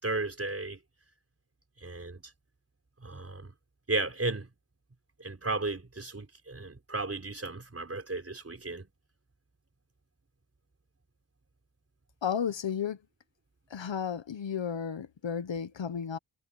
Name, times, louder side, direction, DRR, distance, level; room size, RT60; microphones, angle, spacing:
voice 1, 0.0-0.8 1.8-2.2 3.0-3.5 3.9-4.5 5.2-8.9, right 2 dB, 30° right, 4.7 m, -34 dB
voice 2, 12.2-13.0 13.7-16.2, left 7 dB, 65° left, 1.2 m, -33 dB
wide cardioid pair, 95°, 49 cm